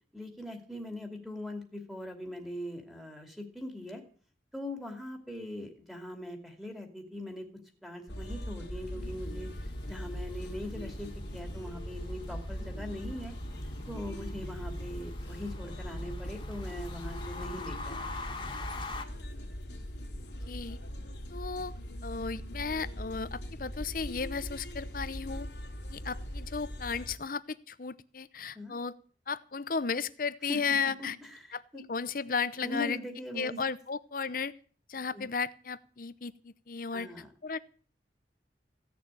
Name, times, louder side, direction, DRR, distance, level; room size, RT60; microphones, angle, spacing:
voice 1, 0.1-4.0 4.5-7.5 7.8-13.3 13.9-18.4 28.5-28.7 30.5-31.9 32.6-33.6 35.1-35.2 36.9-37.3, left 1 dB, ahead, 2 dB, 2.5 m, -41 dB
sound 1, 8.1-27.1, equal, 90° left, 2.6 m, -40 dB
sound 2, 9.0-19.1, left 2 dB, 25° left, 2.0 m, -44 dB
voice 2, 20.5-20.8 21.3-21.7 22.0-25.5 25.9-29.0 29.3-31.2 31.5-33.0 33.3-34.5 34.9-37.1 37.4-37.6, left 5 dB, 50° left, 16 dB, 0.8 m, -34 dB
16.0 x 6.8 x 9.1 m, 0.43 s
head